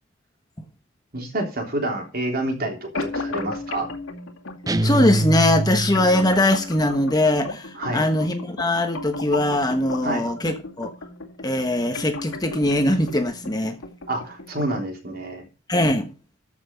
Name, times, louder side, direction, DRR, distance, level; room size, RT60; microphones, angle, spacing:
voice 1, 1.1-3.9 7.8-8.0 10.0-10.2 14.1-15.4, right 1 dB, 45° right, 3.5 m, -28 dB
sound 1, 2.9-14.9, left 3 dB, 80° left, 2.3 m, -35 dB
sound 2, 4.7-6.4, right 1 dB, 15° right, 0.6 m, -24 dB
voice 2, 4.8-10.9 11.4-13.8 15.7-16.1, left 1 dB, 20° left, 1.2 m, -21 dB
13.5 x 6.0 x 5.6 m
head